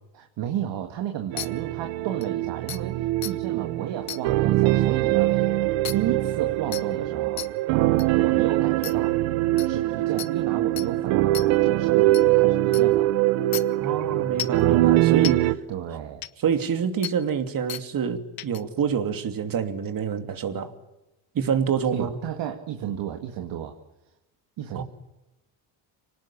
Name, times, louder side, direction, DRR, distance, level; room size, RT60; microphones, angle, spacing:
voice 1, 0.1-5.5 5.9-7.5 8.1-9.2 9.6-13.1 15.7-16.2 21.9-23.8 24.6-24.8, right 10 dB, 65° right, 5 dB, 2.3 m, -33 dB
sound 1, 1.3-15.5, right 16 dB, 90° right, 1.1 m, -22 dB
sound 2, 1.4-1.5 2.2-2.3 2.7-2.8 3.2-3.3 4.1-4.2 5.8-5.9 6.7-6.8 7.4-7.5 8.0-8.1 8.8-8.9 9.6-9.7 10.2-10.3 10.8-10.9 11.3-11.5 12.1-12.2 12.7-12.8 13.5-13.6 14.4-14.6 15.2-15.3 16.2-16.3 17.0-17.1 17.7-17.8 18.4-18.6, left 12 dB, 50° left, 1.2 m, -32 dB
voice 2, 13.8-15.6 16.4-20.7 21.3-22.1 24.7-24.8, right 7 dB, 45° right, 7 dB, 2.9 m, -26 dB
25.5 x 19.0 x 8.7 m, 0.99 s
cardioid pair, 110°, 45 cm